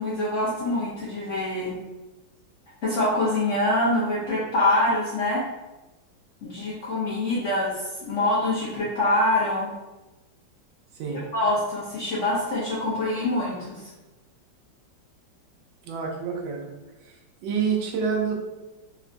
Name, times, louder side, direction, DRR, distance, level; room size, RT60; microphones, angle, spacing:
voice 1, 0.0-1.8 2.8-5.4 6.4-9.7 11.1-13.9, left 1 dB, 65° left, -9 dB, 0.7 m, -25 dB
voice 2, 15.8-16.7 17.0-17.2 17.4-18.3, right 6 dB, 85° right, 0 dB, 1.3 m, -27 dB
3.8 x 2.2 x 2.5 m, 1.1 s
omnidirectional pair, 2.1 m